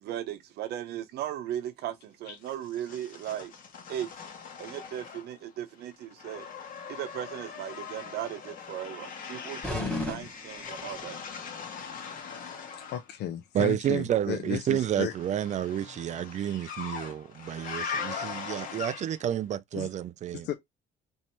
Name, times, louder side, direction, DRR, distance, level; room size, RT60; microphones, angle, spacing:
voice 1, 0.0-3.5 3.9-4.1 4.6-6.5 6.9-11.2, right 11 dB, 75° right, 0.9 m, -37 dB
sound 1, 2.4-5.5 5.8-13.1 14.6-19.3, left 6 dB, 55° left, 1.4 m, -41 dB
sound 2, 9.6-11.1, left 1 dB, 5° left, 1.8 m, -35 dB
voice 2, 9.7-10.3 12.9-15.1 19.7-19.9 20.4-20.5, left 11 dB, 80° left, 0.6 m, -34 dB
voice 3, 13.5-20.5, right 10 dB, 45° right, 0.4 m, -30 dB
3.1 x 2.8 x 4.4 m
cardioid pair, 110°, 17 cm